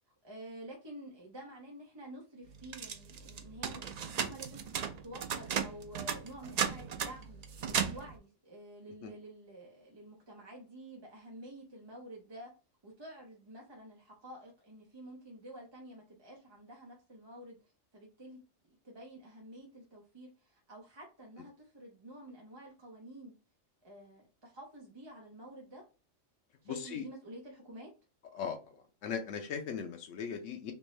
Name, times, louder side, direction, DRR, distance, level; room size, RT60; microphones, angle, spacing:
voice 1, 0.2-12.5 12.8-17.6 17.9-18.4 18.7-23.3 23.8-25.8 26.6-27.9, right 1 dB, 25° right, -2 dB, 0.8 m, -50 dB
sound 1, 2.6-8.1, right 7 dB, 90° right, 0.3 m, -35 dB
voice 2, 26.7-27.0 28.3-30.7, left 7 dB, 90° left, 4 dB, 1.0 m, -39 dB
3.3 x 2.6 x 3.1 m, 0.33 s
omnidirectional pair, 1.3 m